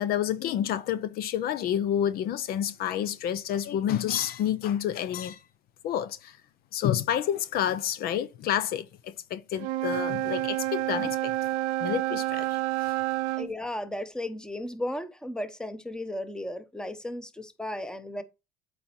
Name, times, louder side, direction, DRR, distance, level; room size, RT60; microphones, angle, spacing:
voice 1, 0.0-5.4 5.8-6.4 6.7-11.3 11.8-13.0, left 10 dB, 60° left, 0.7 m, -29 dB
Wind instrument woodwind instrument, 9.5-13.5, right 15 dB, 90° right, 0.7 m, -29 dB
voice 2, 13.4-18.2, left 1 dB, 5° left, 0.9 m, -35 dB
8.6 x 4.2 x 4.3 m
supercardioid pair, 95°, 18 cm